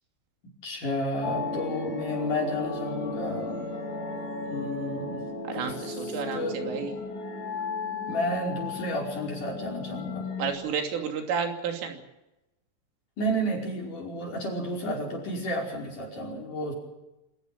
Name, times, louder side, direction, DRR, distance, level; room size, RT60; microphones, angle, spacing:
voice 1, 0.6-3.7 4.4-6.8 8.1-10.3 13.2-16.7, equal, 40° left, 0 dB, 6.3 m, -32 dB
sound 1, 1.2-10.5, left 3 dB, 70° left, 5.9 m, -35 dB
voice 2, 5.5-6.9 10.4-12.0, right 6 dB, 90° right, 3 dB, 5.5 m, -31 dB
26.5 x 14.5 x 8.8 m, 0.94 s
omnidirectional pair, 5.6 m